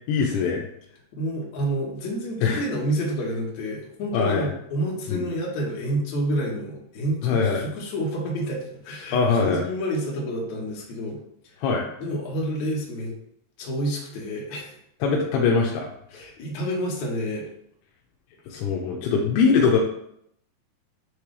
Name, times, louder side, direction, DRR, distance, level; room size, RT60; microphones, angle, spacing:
voice 1, 0.1-0.6 2.4-2.6 4.1-4.5 5.1-5.2 7.2-7.6 9.1-9.6 11.6-11.9 15.0-15.9 18.5-19.8, left 5 dB, 85° left, -1 dB, 2.8 m, -22 dB
voice 2, 1.1-11.2 12.0-13.1 13.6-14.8 16.1-17.5, right 1 dB, 60° left, -3 dB, 2.1 m, -29 dB
9.5 x 3.4 x 3.2 m, 0.73 s
omnidirectional pair, 4.9 m